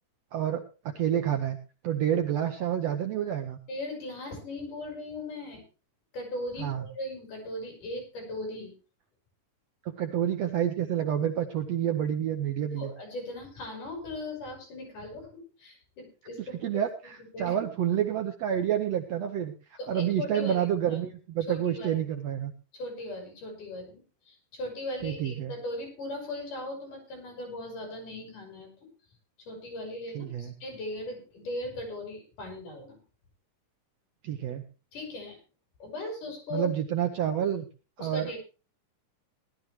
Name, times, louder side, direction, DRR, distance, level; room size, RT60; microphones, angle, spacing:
voice 1, 0.3-1.6 1.8-3.6 6.6-6.9 9.8-12.9 16.4-19.5 19.9-22.5 25.0-25.5 30.1-30.5 34.2-34.6 36.5-37.7 38.0-38.4, right 10 dB, 70° right, 5 dB, 1.6 m, -29 dB
voice 2, 3.7-5.6 6.1-8.7 12.8-16.8 17.2-17.6 19.8-20.7 21.5-22.0 22.7-28.7 29.4-33.0 34.9-35.4 35.8-36.7 38.0-38.4, left 1 dB, 70° left, 3 dB, 6.4 m, -38 dB
18.0 x 12.0 x 3.1 m, 0.32 s
omnidirectional pair, 3.8 m